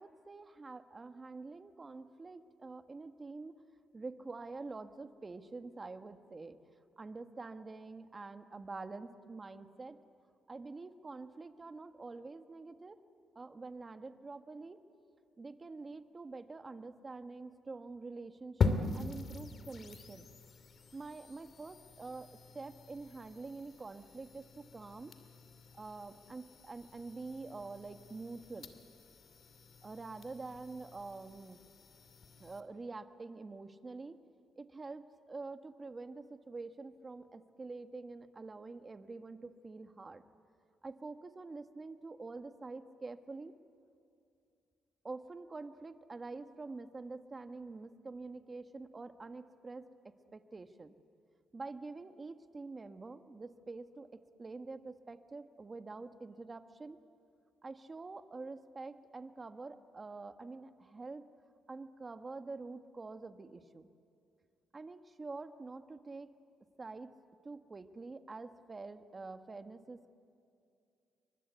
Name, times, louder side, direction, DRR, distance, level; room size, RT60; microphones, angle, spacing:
voice 1, 0.0-3.5 3.9-6.6 7.0-10.0 10.5-13.0 13.3-14.8 15.4-20.3 20.9-22.3 22.5-25.1 25.8-29.0 29.8-31.6 32.4-34.2 34.6-40.2 40.8-43.6 45.0-50.9 51.5-57.0 57.6-61.2 61.7-63.9 64.7-66.3 66.8-67.1 67.4-70.1, right 3 dB, 30° right, 8 dB, 1.5 m, -46 dB
sound 1, 18.6-32.6, left 4 dB, 50° left, 2.6 m, -41 dB
29.5 x 24.5 x 8.3 m, 2.5 s
cardioid pair, 90°, 0 cm